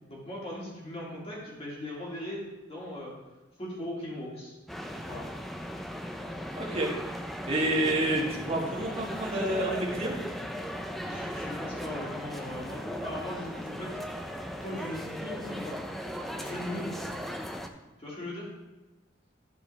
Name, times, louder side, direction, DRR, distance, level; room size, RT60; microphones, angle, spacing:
voice 1, 0.1-3.1 3.6-4.5 5.0-5.2 11.0-13.9 14.6-15.8 16.3-17.3 18.0-18.5, left 1 dB, 30° left, -5 dB, 2.3 m, -39 dB
sound 1, 4.7-17.7, equal, ahead, 0.4 m, -37 dB
voice 2, 6.5-6.9 7.5-10.1, right 1 dB, 30° right, -2 dB, 1.3 m, -28 dB
11.0 x 4.7 x 3.2 m, 1.1 s
head